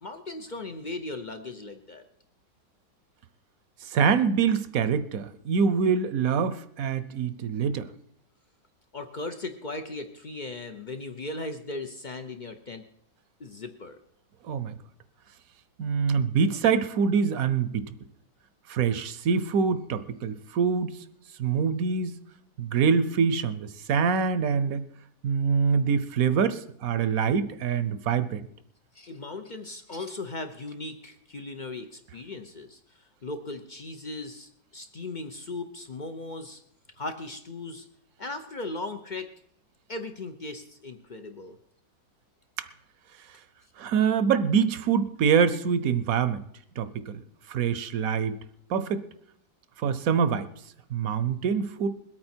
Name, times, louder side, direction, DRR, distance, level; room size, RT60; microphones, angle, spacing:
voice 1, 0.0-2.0 8.9-12.9 13.4-14.0 28.9-36.6 37.0-37.9 38.2-39.3 39.9-41.6, left 2 dB, 65° left, 8 dB, 0.4 m, -38 dB
voice 2, 3.8-7.9 14.5-14.8 15.8-17.9 18.7-21.0 21.4-22.2 22.6-24.8 25.2-28.5 42.6-42.7 43.8-46.4 46.8-47.2 47.5-48.4 48.7-49.1 49.8-50.5 50.9-51.9, right 6 dB, 65° right, 13 dB, 1.0 m, -25 dB
21.5 x 8.8 x 4.4 m, 0.69 s
omnidirectional pair, 1.9 m